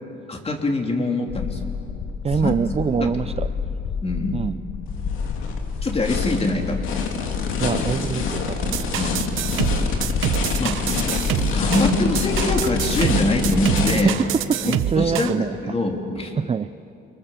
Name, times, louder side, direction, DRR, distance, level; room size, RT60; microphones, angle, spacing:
voice 1, 0.3-1.6 2.4-2.5 2.9-3.1 4.0-4.5 5.8-6.8 9.0-9.3 10.6-10.8 11.5-14.2 14.6-16.3, left 2 dB, 30° left, 2 dB, 3.5 m, -24 dB
sound 1, 1.3-13.9, left 6 dB, 70° left, 1.4 m, -29 dB
voice 2, 2.2-3.5 4.3-4.6 7.6-8.7 13.9-15.6 16.4-16.7, right 6 dB, 30° right, 13 dB, 0.5 m, -24 dB
sound 2, 4.9-14.0, left 4 dB, 85° left, 2.7 m, -27 dB
sound 3, 8.7-15.4, right 12 dB, 85° right, 1.0 m, -26 dB
29.0 x 24.0 x 7.5 m, 2.7 s
cardioid pair, 90°, 20 cm